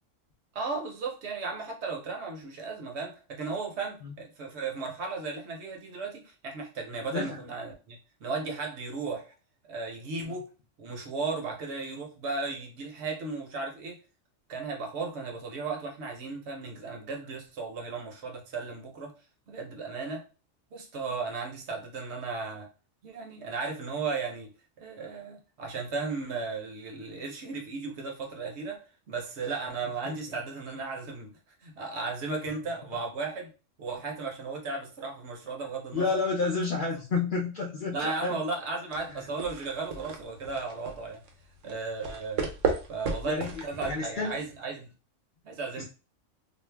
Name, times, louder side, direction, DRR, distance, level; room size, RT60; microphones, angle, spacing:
voice 1, 0.5-9.3 9.7-10.5 10.8-14.0 14.5-19.1 19.5-20.2 20.7-22.7 23.0-24.5 24.8-31.3 31.6-33.5 33.8-36.2 37.9-41.2 41.6-42.5 42.9-44.9 45.4-45.9, right 4 dB, 65° right, 1 dB, 0.9 m, -35 dB
voice 2, 35.9-38.4 39.1-39.2 43.2-44.4, left 4 dB, 55° left, -1 dB, 0.6 m, -30 dB
sound 1, 38.9-44.5, right 5 dB, 85° right, 1.0 m, -35 dB
2.5 x 2.0 x 3.2 m, 0.33 s
omnidirectional pair, 1.3 m